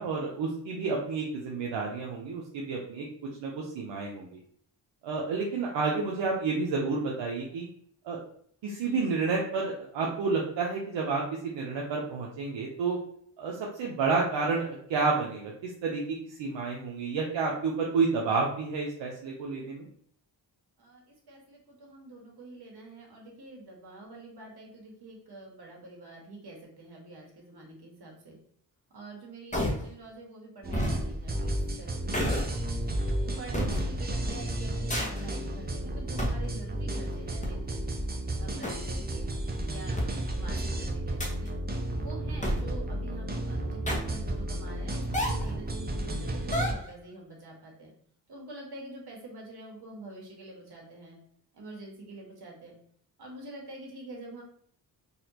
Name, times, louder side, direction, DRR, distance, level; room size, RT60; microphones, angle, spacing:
voice 1, 0.0-3.1 3.4-4.4 5.0-7.7 8.0-8.2 8.6-13.0 13.4-19.9, right 4 dB, 85° right, -2 dB, 0.7 m, -30 dB
voice 2, 20.8-28.4 28.9-32.7 33.2-37.8 38.4-39.3 39.6-41.5 41.9-47.9 48.3-51.2 51.5-52.7 53.2-54.4, right 2 dB, 60° right, -1 dB, 1.6 m, -46 dB
sound 1, 29.5-29.9 30.7-31.0 32.1-32.6 33.5-33.8 34.9-35.2 36.2-36.5 37.4-37.5 38.6-38.7 40.0-40.1 41.2-41.5 42.4-42.7 43.9-44.2 45.1-45.5 46.5-46.9, equal, 15° left, 1.1 m, -29 dB
sound 2, 30.6-46.7, right 1 dB, 20° right, 0.6 m, -33 dB
4.1 x 2.8 x 2.8 m, 0.62 s
cardioid pair, 65°, 43 cm